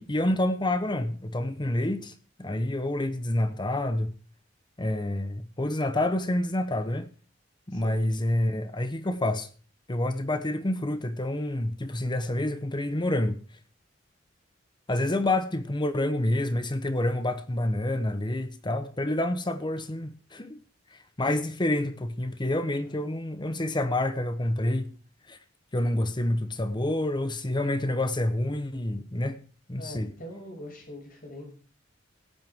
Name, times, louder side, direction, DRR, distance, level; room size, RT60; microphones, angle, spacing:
voice 1, 0.0-2.1 2.4-4.1 4.8-7.1 7.7-9.5 9.9-13.4 14.9-20.6 21.2-24.9 25.3-25.4 25.7-29.4 29.7-30.1, left 1 dB, 25° left, 1.0 m, -28 dB
voice 2, 29.8-31.5, left 1 dB, 50° left, 6.5 m, -42 dB
17.5 x 8.8 x 3.6 m
head